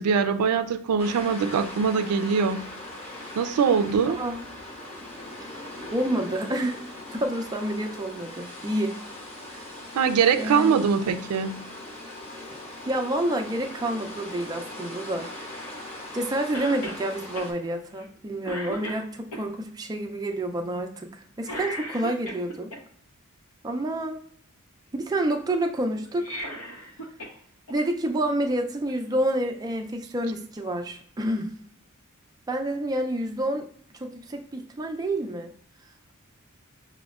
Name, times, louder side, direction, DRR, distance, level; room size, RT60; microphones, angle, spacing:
voice 1, 0.0-2.7 3.4-4.2 10.0-11.6, right 6 dB, 90° right, 9 dB, 0.4 m, -23 dB
sound 1, 1.0-17.5, left 1 dB, 30° left, 0.8 m, -40 dB
voice 2, 5.4-6.8 7.1-9.0 9.5-9.8 10.4-10.9 12.4-12.5 12.9-15.3 16.1-21.1 21.4-22.7 23.6-24.2 24.9-26.4 27.7-31.5 32.5-33.7 33.9-35.5, right 1 dB, 15° right, 3 dB, 0.4 m, -28 dB
Cough, 16.5-17.0 17.4-17.5 18.0-18.2 18.4-19.4 21.4-22.8 26.1-27.4 27.7-27.8 28.9-29.0, equal, 75° left, 0.8 m, -36 dB
6.0 x 2.1 x 2.3 m, 0.62 s
head